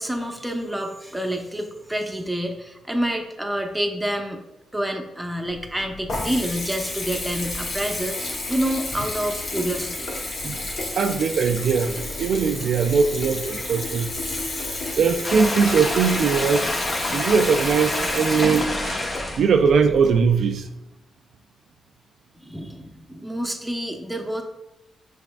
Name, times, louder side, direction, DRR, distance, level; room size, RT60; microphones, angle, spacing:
voice 1, 0.0-4.4 4.7-10.1 22.4-24.4, right 1 dB, 5° right, 3 dB, 0.8 m, -28 dB
Water tap faucet / Bathtub (filling or washing) / Trickle dribble, 5.4-20.3, left 2 dB, 55° left, 1.1 m, -32 dB
voice 2, 11.0-14.1 15.0-16.7 17.1-19.0 19.4-20.7, right 5 dB, 70° right, 6 dB, 0.3 m, -20 dB
sound 1, 15.2-19.4, left 1 dB, 30° left, 0.8 m, -27 dB
6.0 x 3.3 x 2.3 m, 0.90 s
supercardioid pair, 60°, 0 cm